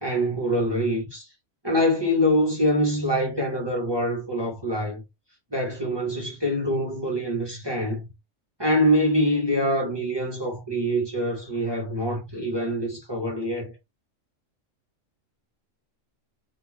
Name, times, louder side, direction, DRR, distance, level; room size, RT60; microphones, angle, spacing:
voice 1, 0.0-1.3 1.6-5.0 5.5-8.1 8.6-13.7, equal, 25° right, 0.6 m, -25 dB
2.6 x 2.3 x 3.3 m
omnidirectional pair, 1.3 m